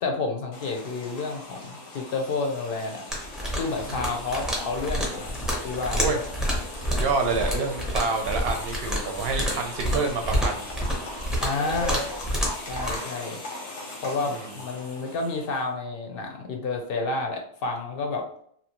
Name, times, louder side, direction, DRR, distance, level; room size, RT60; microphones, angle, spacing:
voice 1, 0.0-3.1 3.5-6.1 11.4-12.1 12.7-13.4 14.0-18.3, left 3 dB, 65° left, 2 dB, 0.7 m, -30 dB
sound 1, 0.5-15.7, left 2 dB, 90° left, 1.0 m, -38 dB
sound 2, 3.1-13.0, equal, ahead, 0.6 m, -29 dB
voice 2, 6.9-10.7 14.3-14.5, right 4 dB, 65° right, 3 dB, 0.7 m, -28 dB
2.8 x 2.3 x 2.8 m, 0.63 s
omnidirectional pair, 1.1 m